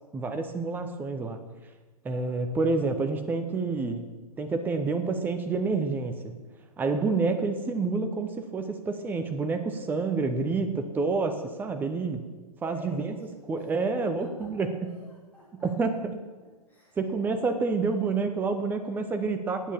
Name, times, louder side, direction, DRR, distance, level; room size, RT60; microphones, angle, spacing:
voice 1, 0.1-1.4 2.0-4.0 4.4-6.3 6.8-12.2 12.6-13.1 13.5-14.7 15.6-16.2 17.0-19.7, right 4 dB, 10° right, 7 dB, 0.7 m, -28 dB
voice 2, 2.1-2.4 12.6-13.3 13.6-14.5 14.8-15.5 16.4-17.0, right 1 dB, 10° left, -7 dB, 3.1 m, -49 dB
10.0 x 8.8 x 7.0 m, 1.3 s
figure-of-eight pair, 110°, 20 cm